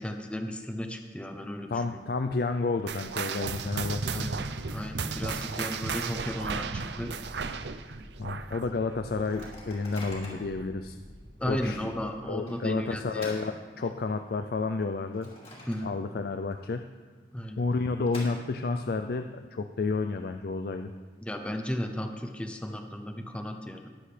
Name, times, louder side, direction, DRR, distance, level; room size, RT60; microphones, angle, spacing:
voice 1, 0.0-2.0 4.1-4.4 4.7-7.1 11.4-13.3 15.7-15.9 17.3-17.6 21.2-23.9, equal, 5° left, 5 dB, 0.6 m, -35 dB
voice 2, 1.7-4.3 8.2-11.0 11.5-11.9 12.2-15.3 15.8-16.9 17.6-20.9, left 3 dB, 55° left, 7 dB, 0.4 m, -31 dB
Microwave oven, 2.7-2.8 3.1-3.2 3.5-6.6 7.0-7.1 7.4-7.7 8.2-8.3 9.1-10.6 11.2-11.3 12.5-14.3 14.7-16.2 16.5-16.6 17.5-18.9, left 1 dB, 35° left, 2.8 m, -48 dB
sound 1, 2.9-9.7 10.0-10.3 10.9-11.0 11.8-11.9, right 5 dB, 80° right, 0.6 m, -34 dB
sound 2, 5.9-12.1, equal, 10° right, 1.7 m, -50 dB
20.0 x 7.8 x 3.3 m, 1.5 s
head